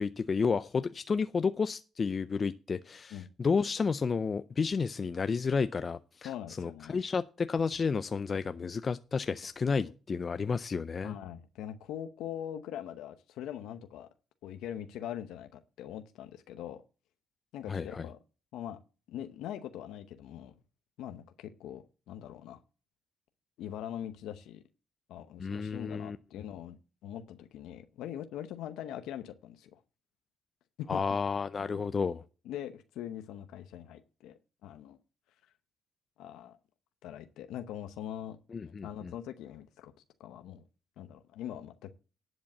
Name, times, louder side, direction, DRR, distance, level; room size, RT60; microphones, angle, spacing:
voice 1, 0.0-6.3 6.6-11.1 17.7-18.0 25.4-26.2 30.9-32.2 38.5-39.1, left 5 dB, 40° left, 0.4 m, -31 dB
voice 2, 6.2-7.0 9.4-9.5 9.8-9.9 11.0-14.1 14.4-16.8 17.5-18.2 18.5-18.8 19.1-20.5 21.0-22.6 23.6-24.6 25.1-26.8 27.0-29.8 30.8-31.0 31.6-31.8 32.1-32.2 32.4-35.0 36.2-36.6 37.0-38.4 38.6-39.9 40.2-40.6 41.0-41.9, left 10 dB, 90° left, 0.8 m, -42 dB
11.0 x 5.2 x 7.2 m
cardioid pair, 90°, 0 cm